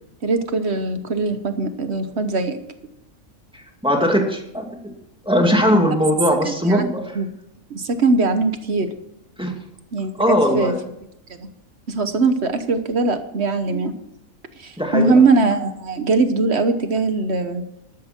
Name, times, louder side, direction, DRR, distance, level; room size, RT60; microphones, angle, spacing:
voice 1, 0.2-2.6 6.4-6.9 7.1-7.3 7.7-9.0 9.9-10.7 11.4-11.5 11.9-14.0 14.6-17.6, right 3 dB, 55° right, 9 dB, 1.4 m, -21 dB
voice 2, 3.8-4.7 5.2-7.2 9.4-9.5 10.2-10.8 14.8-15.2, equal, 5° right, 2 dB, 2.2 m, -19 dB
12.5 x 12.5 x 4.4 m, 0.81 s
omnidirectional pair, 1.4 m